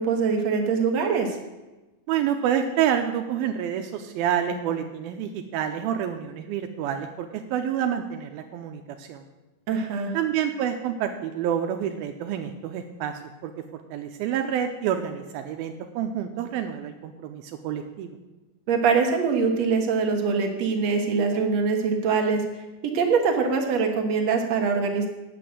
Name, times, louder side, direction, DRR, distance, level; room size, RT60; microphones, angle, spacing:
voice 1, 0.0-1.4 9.7-10.2 18.7-25.1, right 5 dB, 60° right, 3 dB, 2.0 m, -23 dB
voice 2, 2.1-9.2 10.1-13.1 13.4-18.2, right 9 dB, 85° right, 5 dB, 2.5 m, -28 dB
8.8 x 8.4 x 7.5 m, 1.1 s
omnidirectional pair, 4.3 m